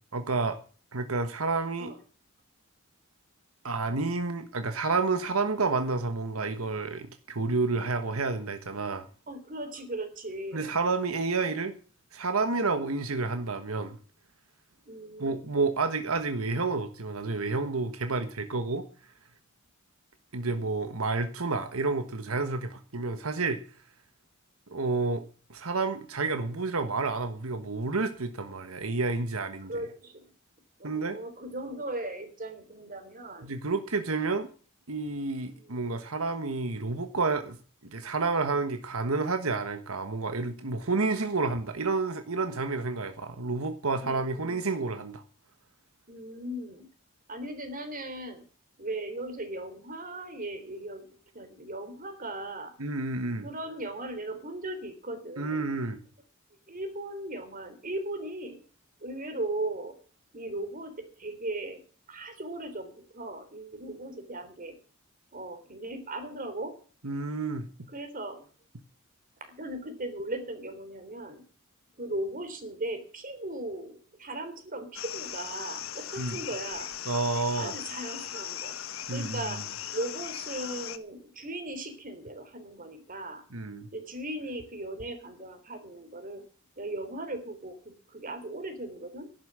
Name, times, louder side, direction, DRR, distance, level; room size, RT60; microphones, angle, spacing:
voice 1, 0.1-0.6 0.9-1.9 3.6-9.1 10.5-11.7 12.1-14.0 15.2-18.8 20.3-23.6 24.7-25.2 25.5-29.7 30.8-31.2 33.4-34.5 34.9-37.6 37.8-45.2 52.8-53.5 55.4-56.0 67.0-67.6 76.2-76.4 77.1-77.7 79.1-79.4 83.5-83.9, right 3 dB, 85° right, 1.4 m, -30 dB
voice 2, 9.3-10.7 14.9-15.4 29.7-30.2 30.8-33.6 35.4-36.0 44.0-44.6 46.1-46.9 47.3-48.4 48.8-52.7 53.4-55.7 56.7-58.6 59.0-60.0 60.3-61.8 62.1-64.8 65.3-66.7 67.9-68.5 69.4-71.4 72.0-76.9 77.6-78.8 79.1-79.6 79.9-83.4 83.9-86.4 86.8-89.3, right 1 dB, 40° right, 3.3 m, -38 dB
sound 1, 74.9-81.0, left 10 dB, 70° left, 1.2 m, -38 dB
11.5 x 10.5 x 7.4 m
head